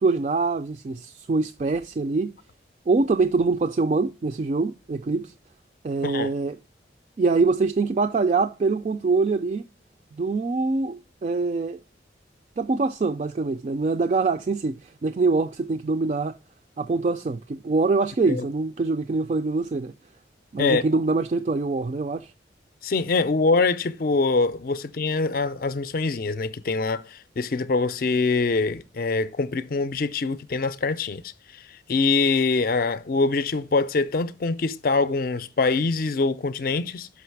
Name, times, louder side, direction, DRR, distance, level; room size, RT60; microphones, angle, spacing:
voice 1, 0.0-2.3 2.9-5.3 5.8-6.6 7.2-9.6 10.2-11.8 12.6-16.4 16.8-19.9 20.5-22.3, right 3 dB, 40° right, 0.3 m, -24 dB
voice 2, 22.8-37.1, left 3 dB, 50° left, 0.4 m, -24 dB
6.2 x 5.8 x 4.6 m
head